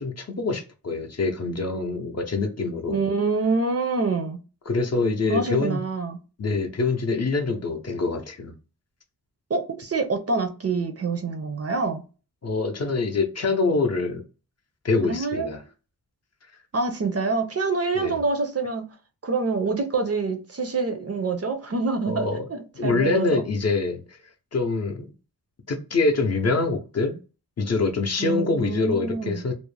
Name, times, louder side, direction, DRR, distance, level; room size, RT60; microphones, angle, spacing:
voice 1, 0.0-3.0 4.7-5.8 6.4-8.5 12.4-14.2 14.8-15.6 18.0-18.1 22.1-22.5 22.8-24.2 24.5-25.1 25.7-27.2 27.6-29.5, left 3 dB, 45° left, 0.5 m, -25 dB
voice 2, 2.9-4.4 5.3-6.2 9.5-12.0 15.0-15.6 16.7-18.9 19.2-23.4 28.2-29.4, right 3 dB, 40° right, 0.5 m, -26 dB
2.5 x 2.0 x 3.1 m
wide cardioid pair, 95°, 37 cm